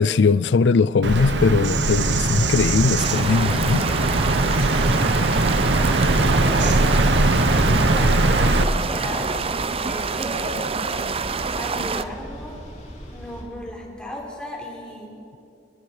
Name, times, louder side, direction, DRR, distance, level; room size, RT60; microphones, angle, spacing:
voice 1, 0.0-3.8, left 4 dB, 85° left, 17 dB, 0.4 m, -19 dB
Bird vocalization bird call bird song, 1.0-8.6, right 2 dB, 85° right, 1.2 m, -20 dB
sound 1, 3.0-12.0, right 4 dB, 35° right, 0.7 m, -27 dB
voice 2, 4.5-5.2 5.7-6.8 7.7-10.7 11.6-12.6 13.1-15.1, equal, 5° left, -2 dB, 4.6 m, -35 dB
sound 2, 4.6-13.4, equal, 45° left, 6.5 m, -38 dB
29.0 x 22.5 x 5.0 m, 2.6 s
head